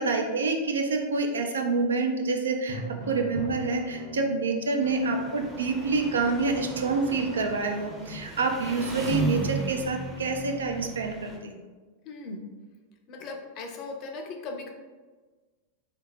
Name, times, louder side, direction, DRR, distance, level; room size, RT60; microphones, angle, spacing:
voice 1, 0.0-2.8 3.1-11.6, right 3 dB, 70° right, 3 dB, 0.4 m, -27 dB
Drum, 2.7-4.7, right 1 dB, 40° right, 1.0 m, -38 dB
Engine, 4.8-11.4, right 2 dB, 10° right, 0.6 m, -35 dB
voice 2, 12.1-12.4 13.1-14.7, left 3 dB, 40° left, 4 dB, 0.4 m, -38 dB
3.5 x 2.4 x 3.0 m, 1.3 s
figure-of-eight pair, 90°, 0 cm